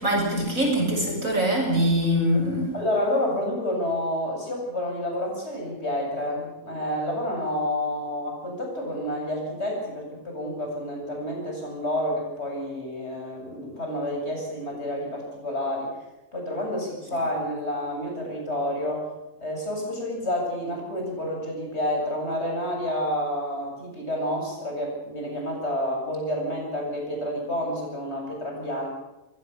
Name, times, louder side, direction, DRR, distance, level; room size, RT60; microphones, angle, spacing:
voice 1, 0.0-2.7, equal, 65° right, 1 dB, 7.4 m, -23 dB
voice 2, 2.7-15.9 16.3-19.1 19.4-28.9, left 1 dB, 45° left, 0 dB, 8.1 m, -29 dB
22.5 x 19.0 x 7.0 m, 0.98 s
omnidirectional pair, 1.5 m